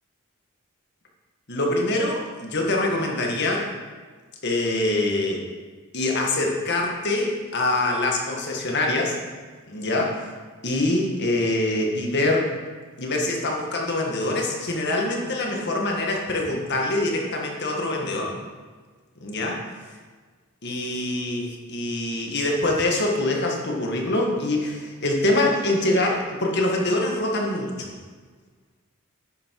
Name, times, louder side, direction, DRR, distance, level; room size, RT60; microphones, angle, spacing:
voice 1, 1.5-3.7 4.4-5.4 5.9-9.2 9.7-10.3 10.6-12.5 13.0-18.3 19.2-19.6 20.6-27.9, left 2 dB, 50° left, 0 dB, 2.0 m, -24 dB
10.5 x 9.1 x 4.9 m, 1.4 s
head